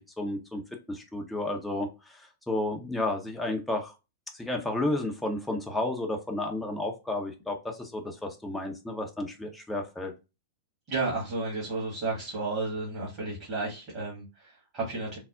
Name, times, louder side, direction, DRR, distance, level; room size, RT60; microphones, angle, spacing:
voice 1, 0.2-0.6 0.9-3.9 4.3-10.1, left 2 dB, 5° left, 1 dB, 0.5 m, -32 dB
voice 2, 10.9-15.2, right 3 dB, 40° right, -5 dB, 1.5 m, -32 dB
3.4 x 2.0 x 2.3 m, 0.27 s
figure-of-eight pair, 100°, 0 cm